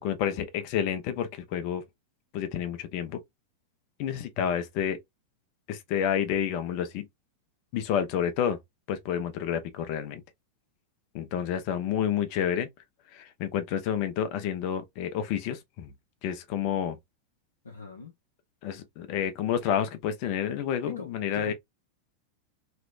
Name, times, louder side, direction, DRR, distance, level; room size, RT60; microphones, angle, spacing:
voice 1, 0.0-1.8 2.3-3.2 4.0-5.0 5.7-7.1 7.7-8.6 8.9-10.2 11.1-12.7 13.1-15.9 16.2-17.0 18.6-21.5, left 9 dB, 45° left, 0.8 m, -29 dB
voice 2, 17.6-18.1 20.8-21.5, left 3 dB, 75° left, 0.9 m, -41 dB
3.2 x 3.0 x 2.5 m
figure-of-eight pair, 90°, 0 cm